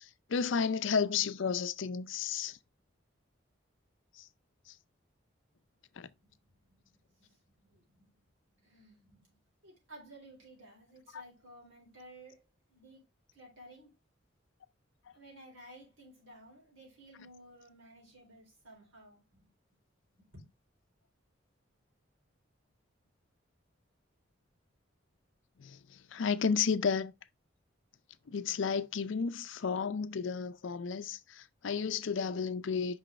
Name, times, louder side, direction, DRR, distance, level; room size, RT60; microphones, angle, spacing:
voice 1, 0.0-2.6 4.2-4.3 4.7-4.8 6.0-6.1 11.1-11.2 25.6-27.1 28.3-33.0, left 6 dB, 70° left, 0.5 m, -32 dB
voice 2, 6.2-8.3 8.6-12.4 12.7-13.0 13.3-13.9 15.1-19.5 20.2-20.5, right 1 dB, 85° right, 3.9 m, -55 dB
6.2 x 5.4 x 3.2 m
head